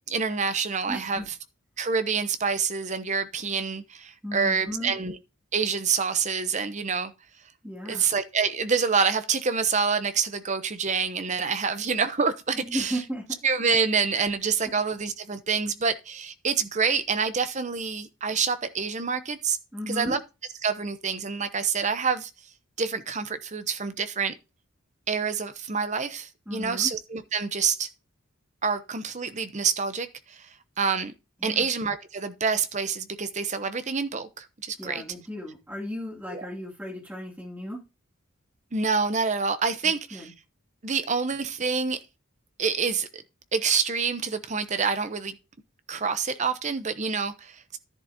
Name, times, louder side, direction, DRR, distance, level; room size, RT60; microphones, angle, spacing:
voice 1, 0.1-1.2 1.8-5.2 5.5-7.1 7.9-13.0 13.4-19.6 19.9-20.2 20.6-22.3 22.8-24.3 25.1-27.9 28.6-30.5 30.8-31.1 31.4-35.0 36.3-36.4 38.7-40.3 40.8-42.0 42.6-43.2 43.5-45.4 45.9-47.8, right 5 dB, 35° right, 0.8 m, -27 dB
voice 2, 0.9-1.3 4.2-4.9 7.6-8.1 12.5-13.2 19.7-20.2 26.5-26.9 31.4-31.7 34.8-37.8 39.8-40.3, equal, 10° right, 2.5 m, -35 dB
10.5 x 10.5 x 2.8 m
head